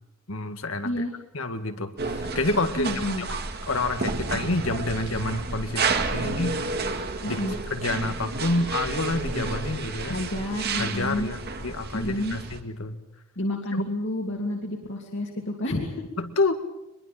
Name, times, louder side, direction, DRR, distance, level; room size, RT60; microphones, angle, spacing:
voice 1, 0.3-1.0 1.3-2.9 3.7-7.4 7.7-10.2 10.8-13.0 13.7-13.8 16.2-16.6, left 2 dB, 75° left, 8 dB, 2.0 m, -28 dB
sound 1, 2.0-12.6, right 3 dB, 50° right, 1.9 m, -31 dB
voice 2, 2.8-3.3 7.2-7.5 10.0-11.3 11.9-12.4 13.4-16.1, left 1 dB, 60° left, 1 dB, 2.7 m, -29 dB
23.5 x 22.0 x 7.7 m, 0.95 s
head